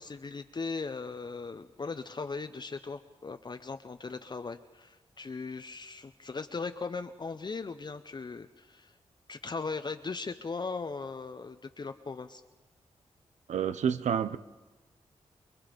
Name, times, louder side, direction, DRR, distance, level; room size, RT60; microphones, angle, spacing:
voice 1, 0.0-8.9 9.3-12.4, left 4 dB, 40° left, 0.8 m, -38 dB
voice 2, 13.5-14.4, right 8 dB, 90° right, 0.7 m, -29 dB
28.5 x 21.0 x 5.1 m
cardioid pair, 75°, 12 cm